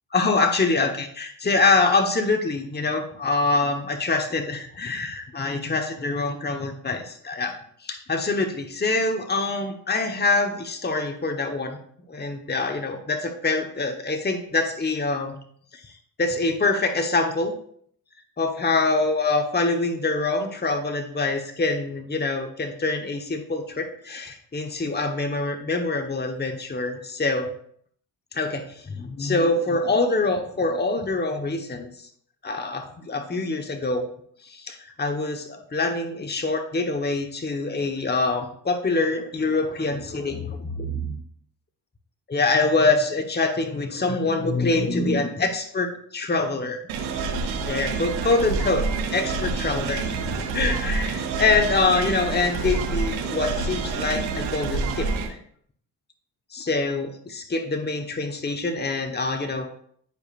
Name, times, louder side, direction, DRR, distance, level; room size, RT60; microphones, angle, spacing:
voice 1, 0.1-7.5 7.8-11.8 12.1-15.4 15.7-15.9 16.2-17.5 18.4-27.5 28.3-32.1 32.4-34.1 34.4-41.2 42.3-46.8 47.5-48.8 49.1-55.1 56.5-59.7, left 3 dB, 20° left, 5 dB, 1.2 m, -25 dB
sound 1, 46.9-55.3, right 4 dB, 85° right, 1.1 m, -27 dB
10.5 x 5.1 x 2.5 m, 0.62 s
hypercardioid pair, 45°, 46 cm